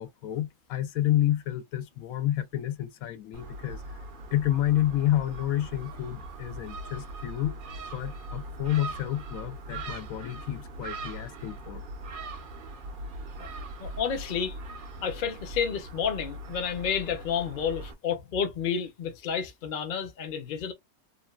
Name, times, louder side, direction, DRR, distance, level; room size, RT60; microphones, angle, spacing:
voice 1, 0.0-4.0 4.3-7.5 7.9-11.8, left 13 dB, 80° left, 1.0 m, -29 dB
Gull seagull, 3.3-17.9, right 2 dB, 55° right, 0.6 m, -41 dB
voice 2, 13.8-14.6 15.0-20.7, left 7 dB, 45° left, 0.7 m, -30 dB
3.1 x 2.3 x 2.3 m
omnidirectional pair, 1.5 m